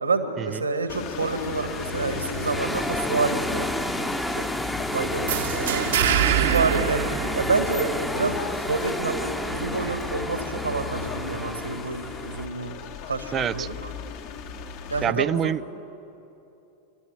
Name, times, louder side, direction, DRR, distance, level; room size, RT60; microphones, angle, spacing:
voice 1, 0.0-4.5 4.8-12.8 13.0-13.9 14.9-15.5, right 3 dB, 80° right, 8 dB, 1.8 m, -28 dB
sound 1, 0.9-15.0, left 7 dB, 45° left, 1.3 m, -36 dB
sound 2, 1.2-12.5, equal, 5° left, 0.9 m, -31 dB
sound 3, 5.3-8.0, right 11 dB, 60° right, 1.0 m, -24 dB
voice 2, 13.3-13.7 15.0-15.7, right 9 dB, 25° right, 18 dB, 0.4 m, -26 dB
29.5 x 12.5 x 9.9 m, 2.8 s
figure-of-eight pair, 90°, 0 cm